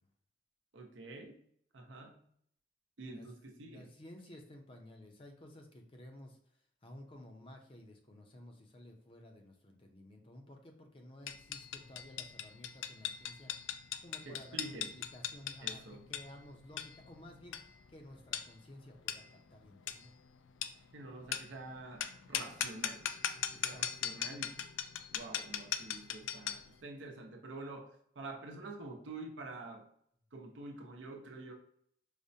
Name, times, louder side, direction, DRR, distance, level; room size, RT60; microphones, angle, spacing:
voice 1, 0.7-1.4 1.7-2.3 3.0-3.9 14.3-15.0 15.6-16.0 20.9-23.1 23.5-24.7 25.1-29.8 30.3-31.5, right 2 dB, 85° right, 2 dB, 0.7 m, -47 dB
voice 2, 3.1-6.4 6.8-13.5 14.0-17.6 17.9-20.1 23.5-23.8, left 1 dB, 30° left, 3 dB, 0.5 m, -54 dB
sound 1, 11.3-26.7, left 10 dB, 90° left, 0.3 m, -40 dB
4.8 x 2.1 x 2.6 m, 0.68 s
head